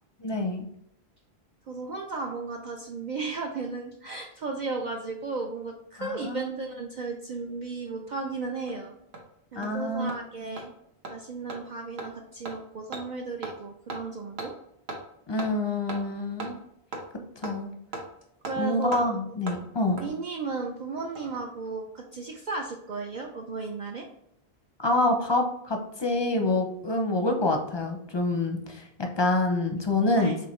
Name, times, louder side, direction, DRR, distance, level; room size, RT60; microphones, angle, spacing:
voice 1, 0.2-0.6 6.0-6.5 9.6-10.1 15.3-16.5 17.4-17.7 18.6-20.0 24.8-30.3, left 2 dB, 30° left, 3 dB, 0.5 m, -27 dB
voice 2, 1.7-9.0 9.5-10.7 11.1-14.6 18.5-19.1 20.0-24.1 30.1-30.4, right 3 dB, 55° right, 1 dB, 0.6 m, -34 dB
Hammer, 8.2-8.3 8.7-8.8 9.1-9.2 9.6-9.7 10.1-10.2 10.6-10.7 11.0-11.1 11.5-11.6 12.0-12.1 12.4-12.6 12.9-13.0 13.4-13.6 13.9-14.0 14.4-14.5 14.9-15.0 15.4-15.5 15.9-16.0 16.4-16.5 16.9-17.0 17.4-17.5 17.9-18.0 18.4-18.6 18.9-19.0 19.5-19.6 20.0-20.1 21.0-21.4 21.6-21.7, right 2 dB, 75° right, 1.1 m, -36 dB
5.0 x 3.5 x 3.0 m, 0.75 s
omnidirectional pair, 1.1 m